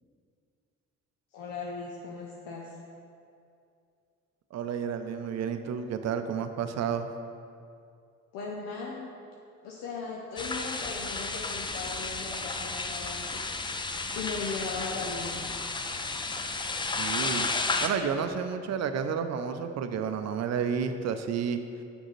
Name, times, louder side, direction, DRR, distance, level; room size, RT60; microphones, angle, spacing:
voice 1, 1.3-2.8 8.3-9.1 9.6-15.4, left 4 dB, 80° left, -3 dB, 0.7 m, -38 dB
voice 2, 4.5-7.1 17.0-17.5 17.8-21.8, right 7 dB, 50° right, 8 dB, 0.5 m, -31 dB
sound 1, 10.4-17.9, left 3 dB, 15° left, 0.4 m, -32 dB
6.4 x 5.4 x 3.1 m, 2.5 s
supercardioid pair, 60°, 33 cm